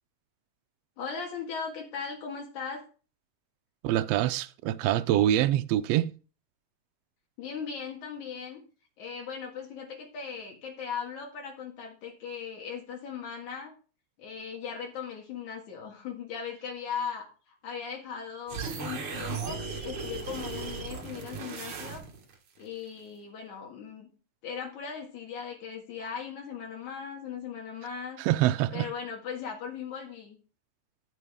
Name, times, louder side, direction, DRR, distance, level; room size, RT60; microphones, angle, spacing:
voice 1, 1.0-2.8 7.4-8.6 9.0-13.7 14.2-22.0 22.6-24.1 24.4-28.2 28.7-30.4, left 6 dB, 85° left, 3.3 m, -38 dB
voice 2, 3.8-6.1 28.2-28.9, right 13 dB, 75° right, 1.5 m, -25 dB
sound 1, 18.5-22.3, right 5 dB, 50° right, 2.0 m, -36 dB
15.5 x 6.1 x 3.5 m
omnidirectional pair, 3.3 m